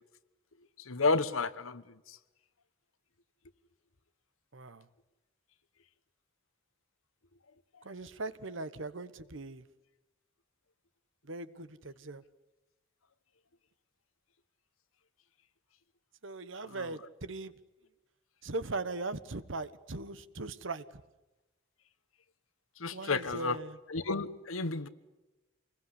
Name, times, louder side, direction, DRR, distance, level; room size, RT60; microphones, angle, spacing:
voice 1, 0.8-1.8 2.1-2.2 16.7-16.9 22.8-23.6 23.9-24.9, left 3 dB, 90° left, 1.2 m, -31 dB
voice 2, 4.5-4.9 7.8-9.6 11.2-12.2 16.2-17.5 18.4-20.8 22.9-23.8, right 2 dB, 70° right, 1.2 m, -39 dB
26.0 x 21.5 x 9.9 m
head